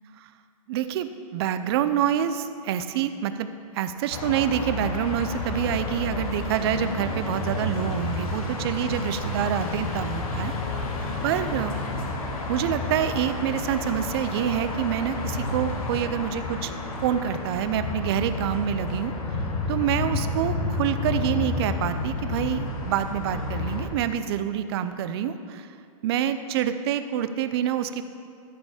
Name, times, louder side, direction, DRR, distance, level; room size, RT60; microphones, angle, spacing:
voice 1, 0.7-10.5 11.0-11.7 12.3-16.7 17.0-19.1 19.7-25.7 26.0-28.0, right 10 dB, 45° right, 11 dB, 0.5 m, -27 dB
sound 1, 4.1-23.9, left 2 dB, 85° left, 1.5 m, -30 dB
13.0 x 5.2 x 4.9 m, 2.3 s
hypercardioid pair, 155°, 18 cm